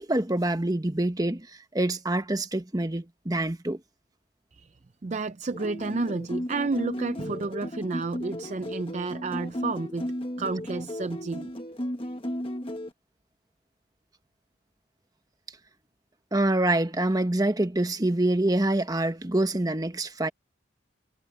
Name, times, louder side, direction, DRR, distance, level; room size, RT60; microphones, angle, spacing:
voice 1, 0.0-1.5 1.7-3.8 16.3-20.3, right 1 dB, 20° right, 1.1 m, -26 dB
voice 2, 4.5-11.5, right 3 dB, 35° right, 0.4 m, -31 dB
sound 1, 5.5-12.9, equal, 30° left, 1.5 m, -35 dB
head